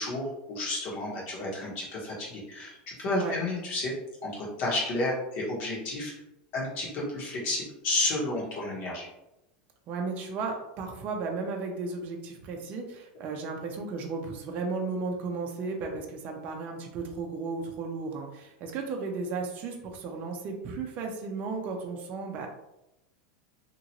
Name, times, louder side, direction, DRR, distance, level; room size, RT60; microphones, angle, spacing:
voice 1, 0.0-3.9 4.2-6.1 6.5-9.1, left 2 dB, 45° left, -4 dB, 1.3 m, -31 dB
voice 2, 3.0-3.4 9.9-22.5, right 4 dB, 35° right, 2 dB, 0.5 m, -34 dB
2.9 x 2.5 x 2.9 m, 0.88 s
supercardioid pair, 150°, 5 cm